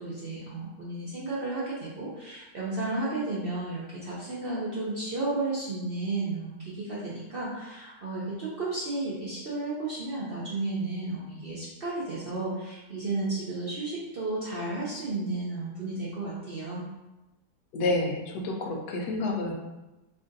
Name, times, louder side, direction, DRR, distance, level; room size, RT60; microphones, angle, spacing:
voice 1, 0.0-16.8, right 2 dB, 70° right, -6 dB, 0.5 m, -33 dB
voice 2, 17.7-19.5, left 2 dB, 65° left, 0 dB, 1.1 m, -29 dB
3.4 x 2.6 x 3.7 m, 1.0 s
omnidirectional pair, 1.9 m